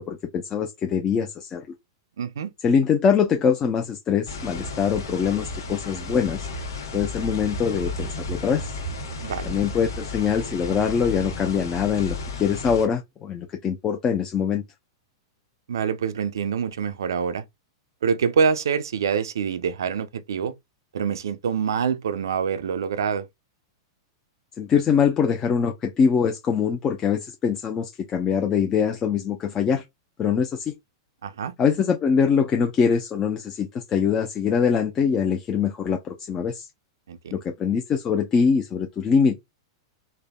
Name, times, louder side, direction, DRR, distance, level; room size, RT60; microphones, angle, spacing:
voice 1, 0.0-1.7 2.6-6.5 6.9-8.7 9.4-14.6 24.6-29.8 30.2-30.7 31.6-36.7 37.3-39.4, left 6 dB, 30° left, 0.4 m, -23 dB
voice 2, 2.2-2.5 9.2-9.6 15.7-17.4 18.0-20.5 20.9-23.3 31.2-31.5 37.1-37.4, right 6 dB, 80° right, 0.4 m, -25 dB
sound 1, 4.3-12.9, left 2 dB, 80° left, 1.0 m, -33 dB
3.4 x 2.1 x 2.2 m
hypercardioid pair, 115°, 2 cm